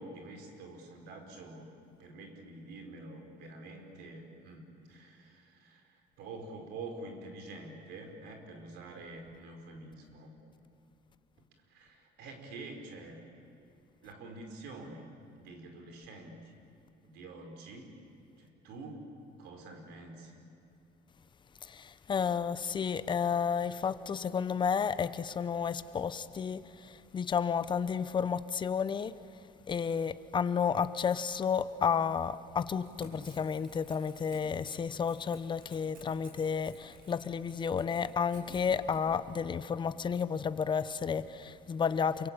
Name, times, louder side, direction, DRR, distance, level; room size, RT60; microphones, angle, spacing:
voice 1, 0.0-10.3 11.6-13.2 14.0-16.5 17.0-17.9 18.4-19.1 19.4-20.4, right 2 dB, 85° right, 4.7 m, -47 dB
voice 2, 21.6-29.1 29.7-42.3, left 6 dB, 30° left, 0.8 m, -32 dB
Crackle / Tearing, 32.7-39.0, right 2 dB, 60° right, 7.3 m, -55 dB
27.5 x 23.5 x 8.9 m
cardioid pair, 145°, 17 cm